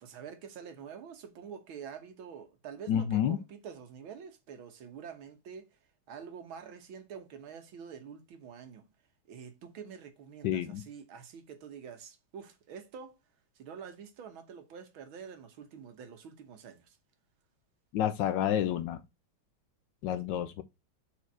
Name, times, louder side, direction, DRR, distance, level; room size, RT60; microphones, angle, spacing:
voice 1, 0.0-5.7 6.1-8.9 9.3-13.2 13.6-17.0, right 7 dB, 75° right, 1.9 m, -47 dB
voice 2, 2.9-3.4 10.4-10.8 17.9-19.0 20.0-20.6, left 10 dB, 70° left, 1.2 m, -29 dB
5.0 x 4.4 x 6.0 m
omnidirectional pair, 2.3 m